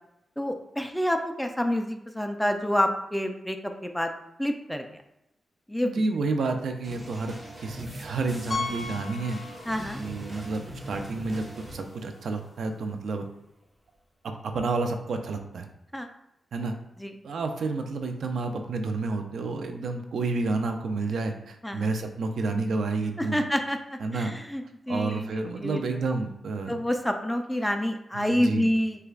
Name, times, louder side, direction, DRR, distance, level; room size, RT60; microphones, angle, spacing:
voice 1, 0.4-4.1 4.4-5.0 5.7-5.9 9.7-10.0 15.9-16.1 17.0-17.1 21.6-21.9 23.2-25.8 26.7-29.0, equal, 5° left, 5 dB, 0.4 m, -28 dB
voice 2, 5.8-7.3 7.6-9.4 10.0-11.5 11.7-13.2 14.2-15.7 16.5-16.7 17.2-23.4 24.0-24.3 24.9-26.8 28.1-28.6, right 3 dB, 80° right, 5 dB, 0.4 m, -30 dB
sound 1, 6.8-12.8, equal, 25° right, 1.1 m, -42 dB
Piano, 8.5-10.1 10.4-10.5 11.1-11.2 11.5-11.6 13.6-13.7, left 4 dB, 40° left, 1.3 m, -35 dB
6.4 x 2.3 x 2.4 m, 0.84 s
wide cardioid pair, 100°, 0 cm